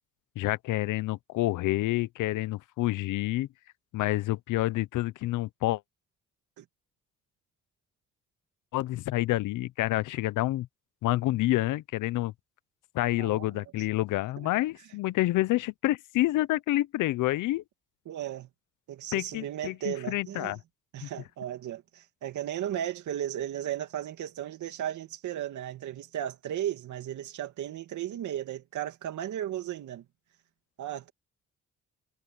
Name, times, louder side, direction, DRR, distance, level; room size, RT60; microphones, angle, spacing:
voice 1, 0.4-3.5 3.9-5.8 8.7-10.7 11.0-12.3 12.9-17.6 19.1-20.6 21.0-21.1, left 17 dB, 85° left, 0.8 m, -28 dB
voice 2, 13.2-13.6 18.1-18.5 18.9-20.6 20.9-30.0 30.8-31.1, right 11 dB, 75° right, 2.4 m, -35 dB
cardioid pair, 90°, 30 cm